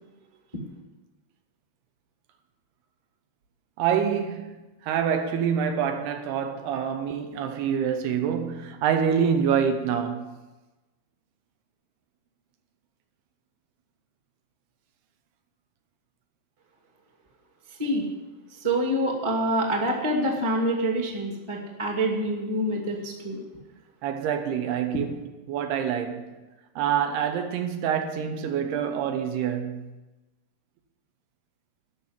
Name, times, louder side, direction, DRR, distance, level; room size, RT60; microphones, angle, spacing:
voice 1, 3.8-10.4 24.0-25.2 25.5-26.4 26.8-29.9, right 8 dB, 80° right, 2.9 m, -26 dB
voice 2, 18.5-23.4 24.9-25.0, right 1 dB, 15° right, 1.2 m, -26 dB
13.5 x 5.9 x 9.6 m
omnidirectional pair, 4.7 m